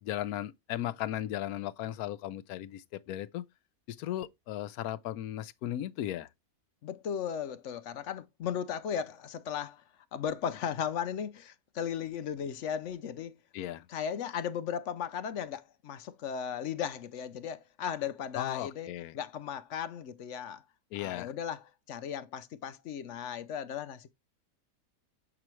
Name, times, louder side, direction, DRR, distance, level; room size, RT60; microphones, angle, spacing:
voice 1, 0.0-3.5 3.9-6.3 13.5-13.9 18.3-19.2 20.9-21.3, left 12 dB, 80° left, 1.1 m, -36 dB
voice 2, 6.8-9.8 10.1-13.3 13.9-20.6 21.0-24.1, left 8 dB, 65° left, 0.8 m, -36 dB
7.5 x 6.0 x 3.1 m
omnidirectional pair, 1.6 m